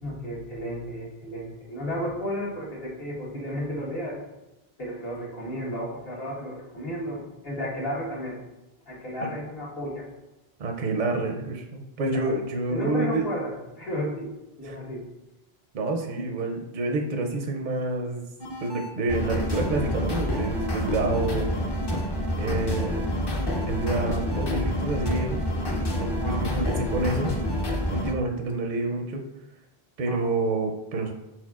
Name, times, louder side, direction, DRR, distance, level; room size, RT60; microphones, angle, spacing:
voice 1, 0.0-4.2 4.8-8.4 8.9-10.1 12.0-12.3 12.7-14.3 14.6-15.0 26.2-26.8 30.0-30.2, equal, 70° left, -5 dB, 1.5 m, -33 dB
voice 2, 10.6-13.2 14.7-14.8 15.7-18.3 18.6-21.5 22.4-23.0 23.7-25.4 25.9-27.4 27.9-29.2 30.0-31.1, right 2 dB, 55° right, 3 dB, 0.6 m, -28 dB
sound 1, 18.4-28.1, equal, 30° left, 0.5 m, -28 dB
4.4 x 4.3 x 2.3 m, 0.98 s
omnidirectional pair, 1.0 m